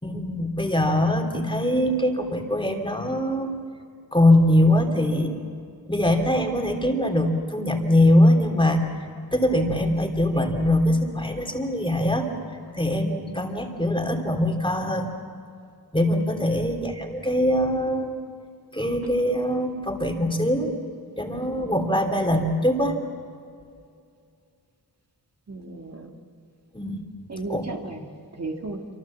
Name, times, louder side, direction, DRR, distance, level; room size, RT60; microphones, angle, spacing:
voice 1, 0.0-3.5 4.1-5.3 5.9-8.8 9.3-15.1 15.9-18.1 18.7-20.7 21.2-23.0 26.7-27.0 27.5-27.6, left 1 dB, 15° left, 3 dB, 2.9 m, -22 dB
voice 2, 25.5-26.1 27.3-28.9, right 2 dB, 40° right, 2 dB, 2.1 m, -34 dB
27.0 x 25.5 x 7.4 m, 2.4 s
wide cardioid pair, 100°, 39 cm